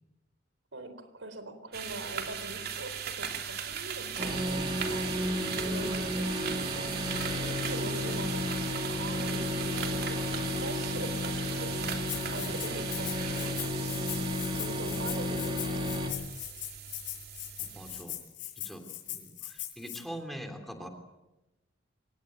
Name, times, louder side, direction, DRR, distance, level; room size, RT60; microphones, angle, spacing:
voice 1, 0.7-5.1 5.6-13.6 14.5-15.6, right 1 dB, 85° right, 10 dB, 4.2 m, -43 dB
sound 1, 1.7-18.0, right 8 dB, 55° right, 3.1 m, -38 dB
sound 2, 4.2-16.1, left 1 dB, 25° right, 4.1 m, -33 dB
Rattle (instrument), 12.1-20.0, left 14 dB, 75° left, 6.5 m, -40 dB
voice 2, 17.6-18.2 18.6-20.9, equal, ahead, 4 dB, 3.2 m, -43 dB
24.5 x 19.5 x 9.2 m, 0.99 s
head